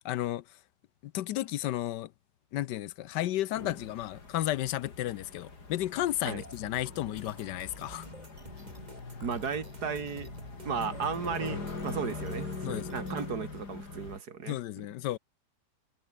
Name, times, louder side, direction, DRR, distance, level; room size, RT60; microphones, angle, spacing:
voice 1, 0.0-0.4 1.0-2.1 2.5-8.1 12.6-12.9 14.5-15.2, left 14 dB, 80° left, 1.3 m, -33 dB
sound 1, 3.5-14.2, left 3 dB, 65° left, 4.3 m, -42 dB
sound 2, 6.4-13.3, right 2 dB, 25° right, 3.7 m, -50 dB
voice 2, 9.2-10.3 10.6-14.6, right 6 dB, 65° right, 2.9 m, -35 dB
omnidirectional pair, 1.9 m